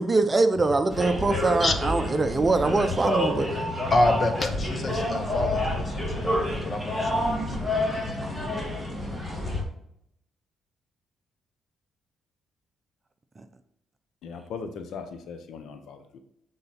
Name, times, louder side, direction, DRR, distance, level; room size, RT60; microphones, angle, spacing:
voice 1, 0.0-3.5, right 3 dB, 25° right, 0.7 m, -23 dB
sound 1, 0.9-9.6, left 1 dB, ahead, 2.7 m, -28 dB
voice 2, 3.9-8.1 8.4-8.5, left 2 dB, 35° left, 1.2 m, -28 dB
voice 3, 14.2-16.2, left 5 dB, 75° left, 0.9 m, -39 dB
9.4 x 4.0 x 4.3 m
cardioid pair, 90°, 0 cm